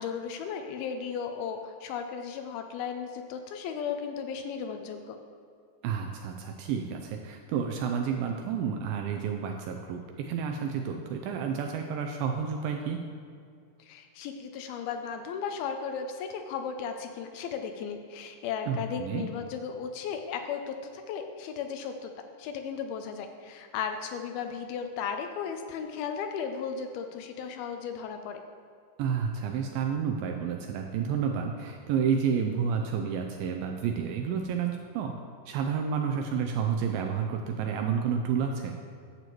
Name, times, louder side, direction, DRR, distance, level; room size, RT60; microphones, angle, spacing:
voice 1, 0.0-5.2 13.8-28.4, left 6 dB, 80° left, 6 dB, 2.3 m, -35 dB
voice 2, 5.8-13.0 18.7-19.3 29.0-35.1 35.5-38.8, right 7 dB, 85° right, 3 dB, 2.1 m, -30 dB
11.5 x 7.7 x 3.0 m, 2.3 s
omnidirectional pair, 4.6 m